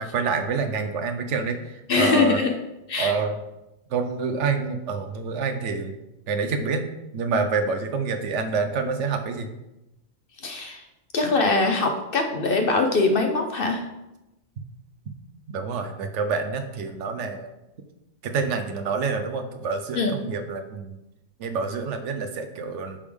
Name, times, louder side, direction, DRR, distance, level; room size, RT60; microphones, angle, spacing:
voice 1, 0.0-2.4 3.0-3.4 3.9-5.9 6.3-6.8 7.1-9.5 15.5-17.5 18.2-21.0 21.4-23.0, right 5 dB, 65° right, 7 dB, 1.0 m, -27 dB
voice 2, 1.9-2.5 2.9-3.1 10.4-10.8 11.1-13.8 19.9-20.1, left 3 dB, 55° left, 4 dB, 0.7 m, -22 dB
10.0 x 3.4 x 3.5 m, 0.94 s
omnidirectional pair, 1.4 m